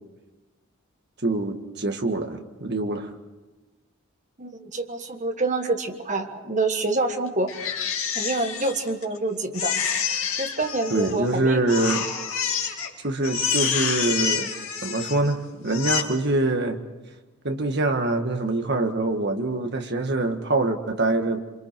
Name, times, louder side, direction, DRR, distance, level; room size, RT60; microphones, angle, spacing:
voice 1, 1.2-3.1 10.9-12.1 13.0-14.5 14.8-16.8 17.4-21.4, right 2 dB, 50° right, 5 dB, 1.7 m, -24 dB
voice 2, 4.4-7.5 8.1-9.8 10.4-11.6, right 2 dB, 35° right, 5 dB, 1.5 m, -27 dB
Crying sobbing, 7.5-9.2 9.5-11.3 11.7-12.9 13.2-15.3 15.7-16.0, left 7 dB, 65° left, 2.5 m, -28 dB
27.5 x 25.0 x 4.6 m, 1.2 s
head